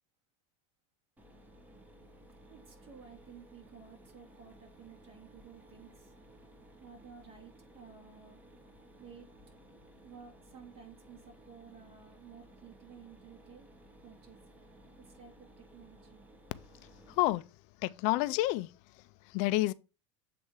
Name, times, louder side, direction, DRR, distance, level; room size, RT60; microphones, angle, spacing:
Mechanisms, 1.2-17.4, right 1 dB, 10° right, 1.3 m, -57 dB
voice 1, 2.5-6.1 6.8-8.4 9.0-9.3 10.0-13.7 14.0-14.4 15.0-16.3, right 7 dB, 40° right, 2.8 m, -54 dB
voice 2, 17.1-17.4 17.8-18.7 19.3-19.7, left 18 dB, 55° left, 0.5 m, -29 dB
7.9 x 3.4 x 4.7 m
hypercardioid pair, 100°, 15 cm